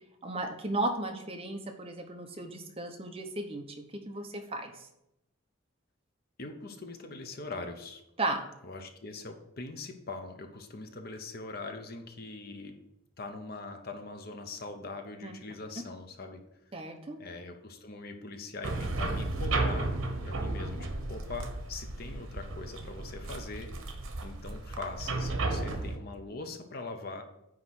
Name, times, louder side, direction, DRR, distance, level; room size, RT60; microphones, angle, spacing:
voice 1, 0.2-4.9 8.2-8.5 15.2-15.3 16.7-17.2, right 2 dB, 30° right, 4 dB, 0.9 m, -35 dB
voice 2, 6.4-8.0 8.6-12.8 13.2-16.4 17.2-19.9 20.2-23.7 24.2-27.2, left 3 dB, 45° left, 5 dB, 0.9 m, -42 dB
sound 1, 18.6-26.0, right 2 dB, 80° right, 1.1 m, -34 dB
9.5 x 3.2 x 6.3 m, 0.82 s
head